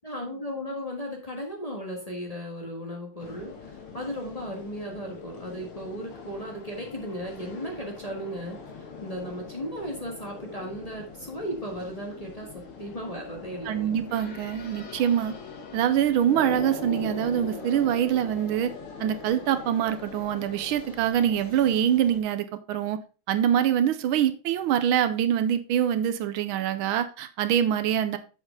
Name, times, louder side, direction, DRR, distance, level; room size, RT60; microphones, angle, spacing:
voice 1, 0.0-13.9, equal, 20° left, -1 dB, 1.4 m, -36 dB
sound 1, 3.2-22.2, left 5 dB, 80° left, 2.1 m, -42 dB
voice 2, 13.6-15.3 15.7-18.7 19.0-23.0 23.3-28.2, right 10 dB, 80° right, 9 dB, 1.5 m, -24 dB
7.2 x 6.4 x 3.6 m, 0.34 s
omnidirectional pair, 2.3 m